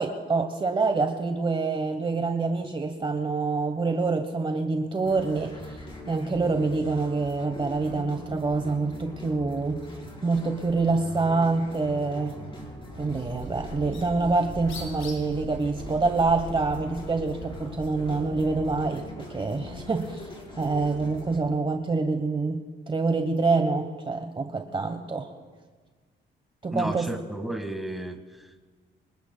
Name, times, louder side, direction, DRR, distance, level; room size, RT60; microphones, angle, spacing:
voice 1, 0.0-9.8 10.2-12.4 13.0-20.3 20.6-25.3 26.6-27.1, right 3 dB, 25° right, 5 dB, 1.1 m, -26 dB
sound 1, 5.0-21.4, left 1 dB, 25° left, 4.4 m, -41 dB
Bird, 12.9-18.9, left 2 dB, 80° left, 5.2 m, -41 dB
voice 2, 26.7-28.6, right 1 dB, ahead, 4 dB, 1.7 m, -33 dB
26.5 x 20.0 x 2.2 m, 1.5 s
cardioid pair, 90°, 20 cm